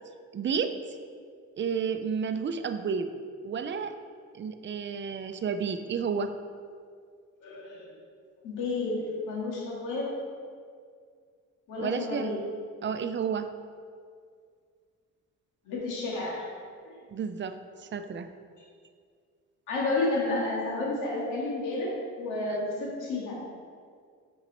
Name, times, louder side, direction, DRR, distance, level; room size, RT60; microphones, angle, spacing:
voice 1, 0.3-0.8 1.6-3.1 3.4-3.9 4.3-6.3 11.8-12.3 12.8-13.5 17.1-18.3, right 6 dB, 40° right, 9 dB, 0.6 m, -31 dB
voice 2, 7.4-7.9 8.4-10.1 11.7-12.4 15.7-16.5 16.9-17.0 19.7-23.4, left 2 dB, 90° left, -4 dB, 2.1 m, -31 dB
7.2 x 5.9 x 4.3 m, 2.1 s
cardioid pair, 90°, 30 cm